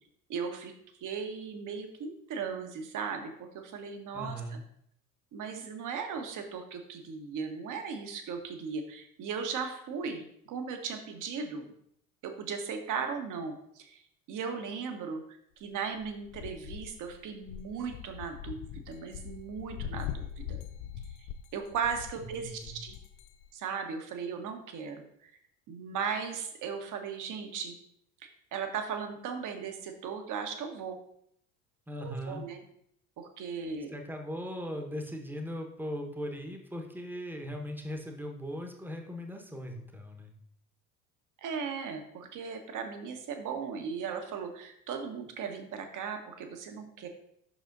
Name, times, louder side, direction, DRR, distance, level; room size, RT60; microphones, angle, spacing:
voice 1, 0.3-0.7 1.0-4.6 5.3-11.7 12.2-14.0 14.3-15.2 15.6-20.6 21.5-23.0 23.5-25.3 25.7-27.7 28.2-31.0 32.0-32.6 33.2-33.9 41.4-47.1, right 6 dB, 45° right, 5 dB, 1.2 m, -37 dB
voice 2, 4.1-4.6 22.4-22.8 31.9-32.4 33.6-40.3, equal, 5° right, 3 dB, 1.1 m, -39 dB
sound 1, 16.0-23.5, left 9 dB, 45° left, 0.4 m, -42 dB
8.2 x 6.1 x 2.6 m, 0.72 s
figure-of-eight pair, 65°, 45 cm